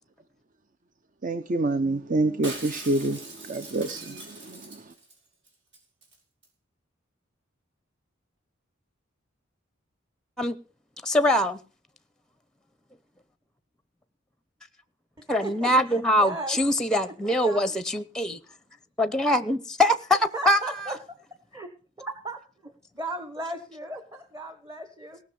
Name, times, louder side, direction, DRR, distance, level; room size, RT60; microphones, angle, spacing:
voice 1, 1.2-4.8, right 2 dB, 40° right, 0.7 m, -27 dB
Shatter, 2.4-5.2 5.5-5.6 5.7-6.2 6.4-6.5, right 2 dB, 60° right, 5.0 m, -41 dB
voice 2, 11.0-11.6 15.3-18.4 19.0-20.6, left 1 dB, 5° left, 0.8 m, -23 dB
voice 3, 15.2-16.6 17.0-17.7 20.3-21.0 21.5-21.7 22.0-25.2, right 2 dB, 15° right, 1.2 m, -37 dB
18.5 x 6.2 x 6.9 m
head